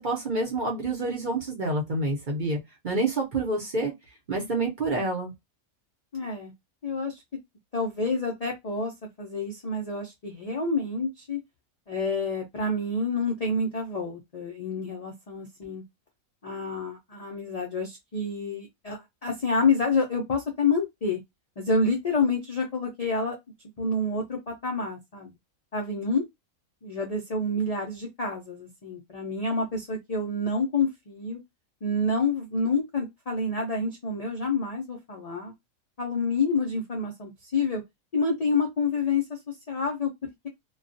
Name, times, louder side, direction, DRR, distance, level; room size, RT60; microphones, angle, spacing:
voice 1, 0.0-2.6 2.8-3.9 4.3-5.3, right 2 dB, 45° right, 0.7 m, -28 dB
voice 2, 6.1-6.5 6.8-7.2 7.7-8.9 9.2-11.4 11.9-15.8 16.4-21.2 21.6-23.4 23.8-25.3 25.7-26.2 26.8-31.4 31.8-35.5 36.0-37.8 38.1-39.4 39.7-40.1, left 3 dB, 70° left, 0.3 m, -28 dB
2.3 x 2.2 x 2.5 m
omnidirectional pair, 1.5 m